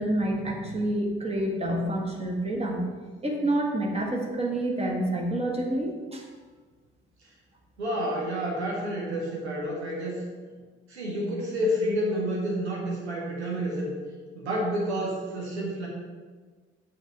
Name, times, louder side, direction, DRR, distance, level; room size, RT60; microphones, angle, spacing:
voice 1, 0.0-2.9 3.2-6.2, right 1 dB, 20° right, 0 dB, 1.5 m, -28 dB
voice 2, 7.8-10.2 10.9-13.9 14.3-15.9, equal, 80° right, -3 dB, 1.2 m, -29 dB
6.5 x 3.4 x 5.8 m, 1.4 s
figure-of-eight pair, 45°, 32 cm